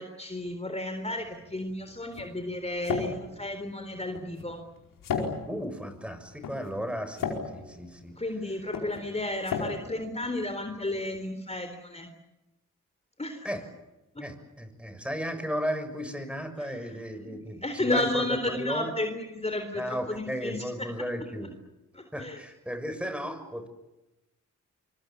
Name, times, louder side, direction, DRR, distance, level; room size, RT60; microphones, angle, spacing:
voice 1, 0.0-4.6 8.2-12.1 13.2-13.5 14.1-14.2 16.6-16.7 17.2-17.3 17.6-20.9 21.9-22.4, left 1 dB, 20° left, 6 dB, 3.9 m, -32 dB
sound 1, 1.2-11.0, left 5 dB, 85° left, 4.9 m, -37 dB
voice 2, 5.5-8.2 13.4-13.6 14.2-18.9 19.7-21.5 22.1-23.7, equal, 5° right, 9 dB, 6.8 m, -35 dB
25.0 x 24.0 x 8.8 m, 1.0 s
supercardioid pair, 45°, 32 cm